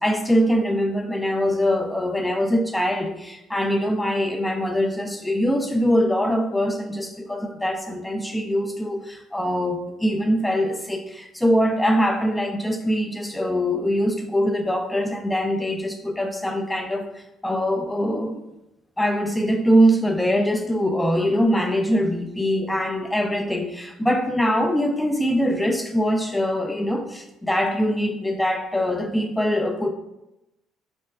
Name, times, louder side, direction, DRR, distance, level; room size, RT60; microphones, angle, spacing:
voice 1, 0.0-17.1 17.4-18.4 19.0-29.9, equal, 5° left, 5 dB, 0.4 m, -23 dB
3.9 x 3.3 x 2.2 m, 0.90 s
cardioid pair, 140°, 0 cm